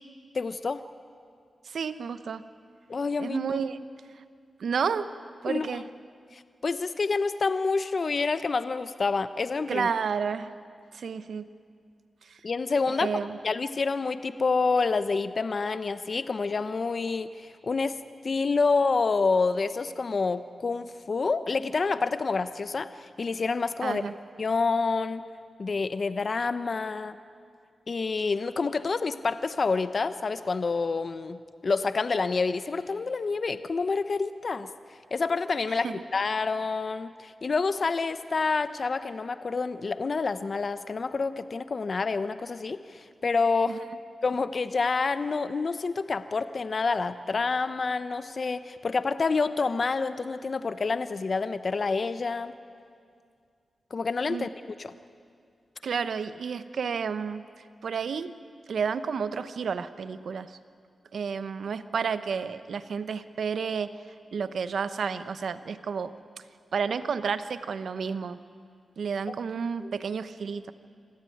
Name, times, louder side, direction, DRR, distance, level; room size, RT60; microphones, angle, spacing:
voice 1, 0.3-0.8 2.9-3.6 5.5-5.7 6.3-9.9 12.4-13.1 13.4-18.0 18.2-24.0 24.4-25.2 25.6-27.1 27.9-31.4 31.6-34.7 35.1-35.9 36.1-43.8 44.2-52.5 53.9-54.5 54.8-54.9 69.8-69.9, left 4 dB, 55° left, 12 dB, 0.9 m, -28 dB
voice 2, 1.6-2.4 3.2-3.8 4.2-4.3 4.6-5.1 5.4-5.8 9.7-10.5 10.9-11.5 12.2-12.4 12.9-13.4 23.8-24.1 35.7-36.0 43.7-43.8 54.3-54.5 55.8-57.4 57.8-58.3 58.7-60.6 61.1-64.0 64.3-66.1 66.7-68.4 69.0-70.7, right 6 dB, 80° right, 12 dB, 0.9 m, -31 dB
26.0 x 15.5 x 9.3 m, 2.2 s
cardioid pair, 50°, 0 cm